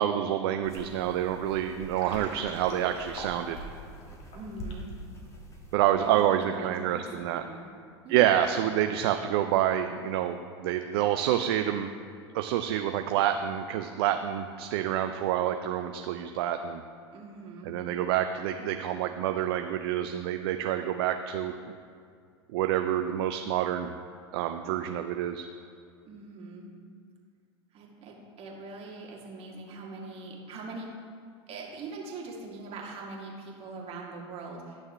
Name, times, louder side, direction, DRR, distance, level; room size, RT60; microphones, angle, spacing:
voice 1, 0.0-3.6 5.7-7.4 8.1-11.9 12.3-16.8 17.7-21.6 22.5-23.9 24.3-25.5, right 11 dB, 60° right, 7 dB, 0.4 m, -28 dB
sound 1, 0.6-5.8, right 1 dB, 20° left, 1.5 m, -45 dB
Water, 1.8-4.9, left 1 dB, 40° left, 1.8 m, -44 dB
voice 2, 4.3-4.9 6.0-7.7 8.0-8.5 17.1-17.7 26.1-26.7 27.7-31.0 31.5-34.8, right 3 dB, 40° right, -2 dB, 1.9 m, -42 dB
11.5 x 6.3 x 3.2 m, 2.2 s
hypercardioid pair, 95°, 15 cm